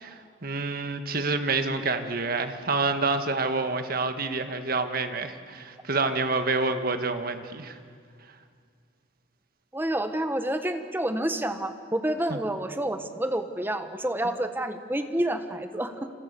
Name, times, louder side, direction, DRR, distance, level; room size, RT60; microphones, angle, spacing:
voice 1, 0.0-7.8 12.3-12.4, right 3 dB, 50° right, 8 dB, 1.7 m, -28 dB
voice 2, 9.7-15.9, right 1 dB, 10° right, 8 dB, 1.2 m, -29 dB
28.0 x 27.5 x 6.9 m, 2.1 s
head